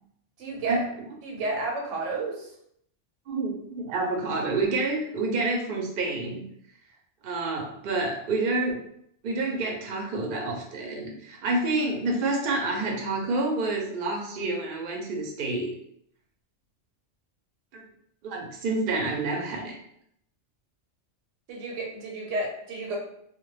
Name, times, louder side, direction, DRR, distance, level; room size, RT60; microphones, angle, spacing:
voice 1, 0.4-0.8 1.2-2.5 21.5-23.0, right 3 dB, 85° right, -1 dB, 1.0 m, -31 dB
voice 2, 3.3-6.5 7.2-8.8 9.2-15.7 17.7-17.8 18.2-19.7, right 2 dB, 55° right, 0 dB, 0.6 m, -28 dB
2.2 x 2.1 x 3.1 m, 0.70 s
omnidirectional pair, 1.2 m